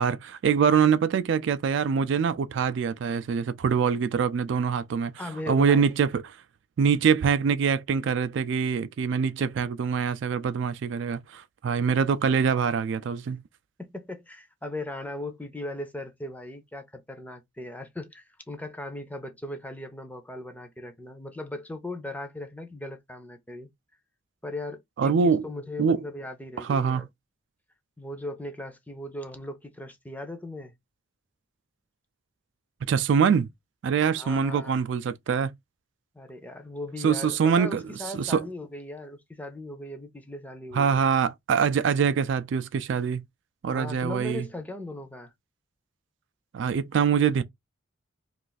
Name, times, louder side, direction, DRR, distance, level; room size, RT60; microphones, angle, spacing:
voice 1, 0.0-5.1 5.5-6.2 6.8-13.4 25.0-25.4 25.8-26.0 26.6-27.1 32.9-33.5 33.8-35.5 37.0-37.8 38.2-38.4 40.7-43.2 43.6-44.5 46.5-47.4, right 6 dB, 65° right, 0.3 m, -24 dB
voice 2, 5.2-6.0 13.8-23.7 24.4-27.1 28.0-30.7 34.1-34.8 36.1-41.1 43.7-45.3, left 1 dB, 10° left, 0.5 m, -38 dB
2.4 x 2.4 x 3.9 m
head